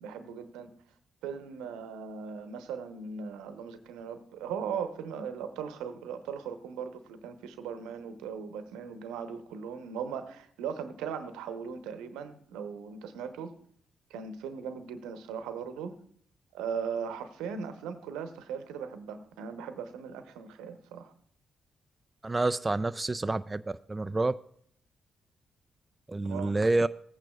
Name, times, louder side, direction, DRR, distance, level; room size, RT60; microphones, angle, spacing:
voice 1, 0.0-0.7 1.2-13.5 14.1-15.9 16.5-21.1 26.2-26.5, right 6 dB, 80° right, 9 dB, 0.8 m, -38 dB
voice 2, 22.2-23.6 23.9-24.3 26.1-26.9, right 2 dB, 25° right, 11 dB, 0.3 m, -28 dB
17.0 x 8.8 x 2.3 m, 0.62 s
hypercardioid pair, 40°, 0 cm